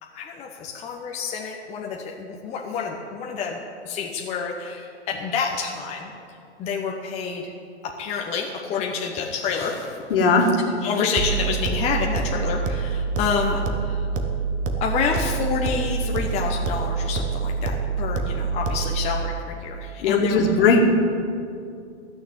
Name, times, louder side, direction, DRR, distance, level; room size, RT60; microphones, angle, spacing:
voice 1, 0.0-7.5 7.8-10.5 10.8-14.1 14.8-20.4, left 5 dB, 20° left, 0 dB, 0.9 m, -28 dB
voice 2, 10.1-10.5 20.0-20.8, left 4 dB, 50° left, 2 dB, 2.1 m, -18 dB
sound 1, 11.2-19.2, right 5 dB, 20° right, 0.9 m, -26 dB
15.0 x 6.7 x 8.7 m, 2.4 s
hypercardioid pair, 130°, 35 cm